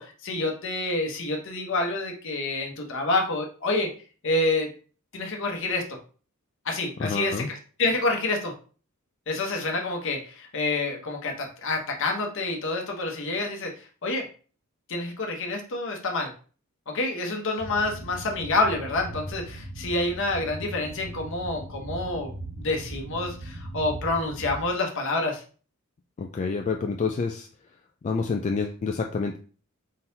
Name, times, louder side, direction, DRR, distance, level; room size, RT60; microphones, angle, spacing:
voice 1, 0.0-3.9 4.2-4.7 5.1-5.9 6.6-8.5 9.3-14.3 14.9-16.3 16.9-25.4, left 2 dB, 60° left, 2 dB, 1.0 m, -28 dB
voice 2, 7.0-7.5 26.2-27.5 28.0-29.4, left 4 dB, 35° left, 3 dB, 0.3 m, -28 dB
sound 1, 17.6-24.6, right 1 dB, 70° right, 1.1 m, -39 dB
4.2 x 3.9 x 2.7 m, 0.39 s
head